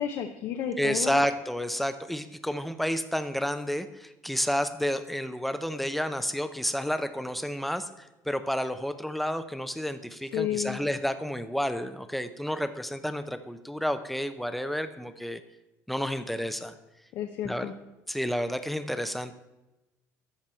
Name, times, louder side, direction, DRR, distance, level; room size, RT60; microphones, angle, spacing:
voice 1, 0.0-1.2 10.3-10.8 17.1-17.7, left 9 dB, 65° left, 5 dB, 0.6 m, -31 dB
voice 2, 0.8-7.9 8.3-15.4 15.9-16.7 17.4-17.7 18.1-19.3, equal, ahead, 10 dB, 0.6 m, -30 dB
13.0 x 4.7 x 4.4 m, 1.0 s
supercardioid pair, 100°, 7 cm